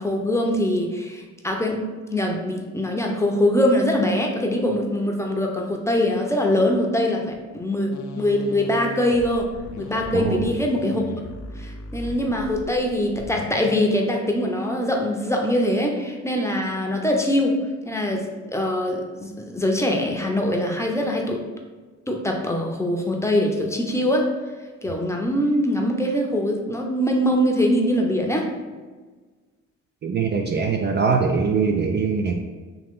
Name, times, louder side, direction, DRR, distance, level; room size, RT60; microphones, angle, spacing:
voice 1, 0.0-1.8 2.1-9.5 9.8-11.0 11.6-17.6 17.8-21.4 22.1-24.3 24.8-28.5, left 1 dB, 10° left, 1 dB, 0.6 m, -23 dB
sound 1, 7.9-13.8, left 3 dB, 75° left, 0.5 m, -38 dB
voice 2, 10.1-10.4 30.0-32.3, right 5 dB, 35° right, 2 dB, 0.4 m, -22 dB
3.8 x 2.8 x 3.7 m, 1.4 s
cardioid pair, 90°, 30 cm